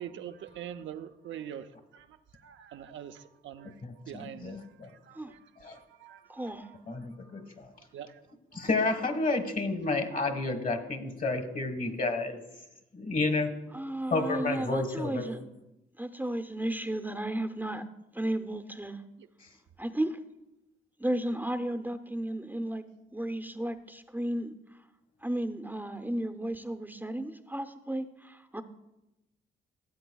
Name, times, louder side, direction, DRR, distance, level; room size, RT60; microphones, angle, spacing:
voice 1, 0.0-2.1 2.3-3.7 4.1-6.8 7.2-7.3 7.9-8.2 8.5-8.7, right 9 dB, 75° right, 0.6 m, -44 dB
voice 2, 3.8-4.9 5.6-5.8 6.9-7.4 8.5-12.4 12.9-13.5 14.1-15.2, left 3 dB, 45° left, 1.5 m, -30 dB
voice 3, 6.3-6.7 13.7-15.4 16.0-17.8 18.1-19.0 19.8-20.2 21.0-22.8 23.1-24.8 25.2-28.6, right 1 dB, 10° right, 0.6 m, -34 dB
16.0 x 8.0 x 2.3 m
supercardioid pair, 60°, 20 cm